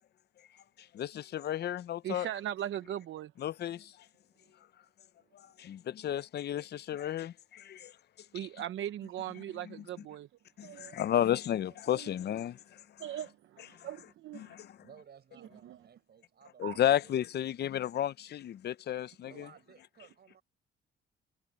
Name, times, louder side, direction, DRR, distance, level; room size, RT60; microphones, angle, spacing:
voice 1, 0.9-2.3 3.4-3.9 5.6-7.9 9.7-9.8 10.6-12.6 13.8-13.9 14.3-14.7 16.6-19.5, left 11 dB, 55° left, 0.6 m, -32 dB
voice 2, 2.0-3.3 8.3-10.3 10.6-11.0 11.9-12.0 13.0-14.6 15.6-15.8 16.6-16.8, right 11 dB, 75° right, 0.9 m, -39 dB
voice 3, 14.8-17.3 18.9-20.4, right 8 dB, 55° right, 6.7 m, -58 dB
cardioid pair, 90°, 20 cm